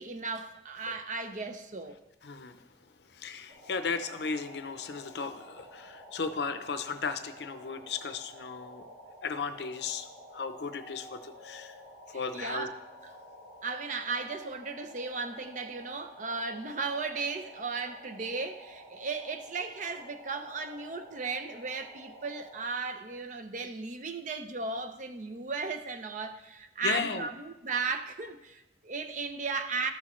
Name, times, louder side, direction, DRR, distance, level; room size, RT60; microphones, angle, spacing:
voice 1, 0.0-2.0 12.1-12.8 13.6-29.9, right 4 dB, 45° right, 0.6 m, -36 dB
voice 2, 2.2-2.7 3.1-8.9 9.2-10.1 10.3-11.7 12.1-12.7 26.8-27.3, left 5 dB, 70° left, 0.6 m, -35 dB
sound 1, 3.5-22.6, equal, 70° right, 1.9 m, -51 dB
13.0 x 6.3 x 3.1 m
head